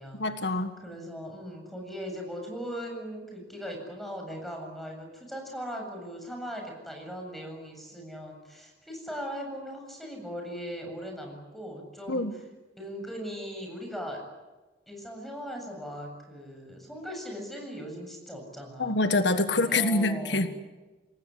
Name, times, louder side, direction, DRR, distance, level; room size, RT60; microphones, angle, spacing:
voice 1, 0.2-0.7 12.1-12.3 18.8-20.5, left 2 dB, 80° left, 9 dB, 1.6 m, -25 dB
voice 2, 0.8-12.2 12.8-14.2 14.9-19.0 19.5-20.5, equal, ahead, 2 dB, 7.8 m, -39 dB
28.0 x 19.0 x 9.9 m, 1.2 s
head